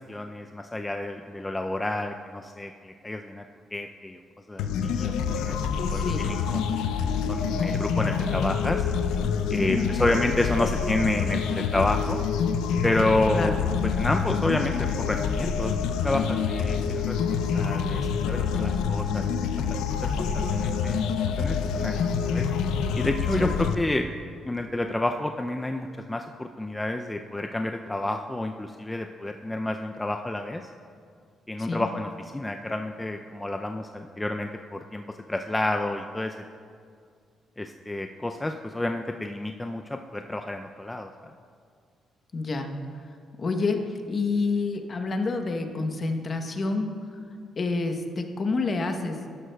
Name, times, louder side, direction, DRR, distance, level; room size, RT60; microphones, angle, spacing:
voice 1, 0.1-3.4 3.7-4.2 4.5-6.7 7.3-8.9 9.5-12.2 12.8-15.8 16.0-16.8 17.1-19.3 20.0-21.0 21.4-22.5 22.9-24.1 24.5-30.6 31.5-35.0 35.3-36.3 37.6-41.1, left 1 dB, 15° left, 5 dB, 0.3 m, -29 dB
sound 1, 4.6-23.7, left 6 dB, 90° left, 0.4 m, -27 dB
voice 2, 5.9-6.3 9.5-10.0 13.3-13.6 23.4-23.5 31.6-31.9 42.3-42.7 43.4-43.8 44.1-46.9 47.6-49.2, left 3 dB, 40° left, 5 dB, 0.9 m, -28 dB
11.5 x 11.0 x 2.2 m, 2.2 s
cardioid pair, 90°, 0 cm